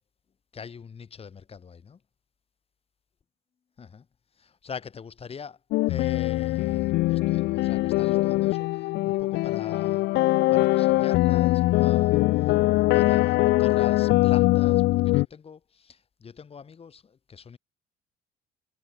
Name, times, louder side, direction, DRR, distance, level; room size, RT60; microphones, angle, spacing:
voice 1, 0.5-2.0 3.8-4.1 4.3-5.6 5.9-10.1 10.5-17.6, left 6 dB, 35° left, 5.5 m, -42 dB
sound 1, 5.7-15.3, left 19 dB, 85° left, 1.4 m, -22 dB
cardioid pair, 110°, 17 cm